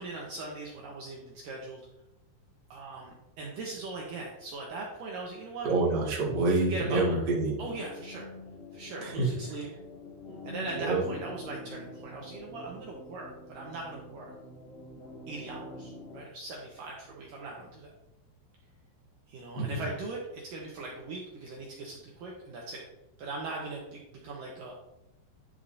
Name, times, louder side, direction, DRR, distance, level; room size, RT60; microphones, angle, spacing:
voice 1, 0.0-1.8 2.7-5.7 6.5-7.2 7.6-8.3 8.7-9.7 10.4-14.3 15.3-17.9 19.3-22.8 23.2-24.7, right 2 dB, 70° right, -2 dB, 2.1 m, -40 dB
voice 2, 5.6-7.6 9.0-9.1 10.7-11.0 19.6-19.7, right 3 dB, 50° right, -4 dB, 1.2 m, -27 dB
sound 1, 7.3-16.2, left 1 dB, 60° left, 0.6 m, -46 dB
11.0 x 6.5 x 2.7 m, 0.89 s
omnidirectional pair, 5.1 m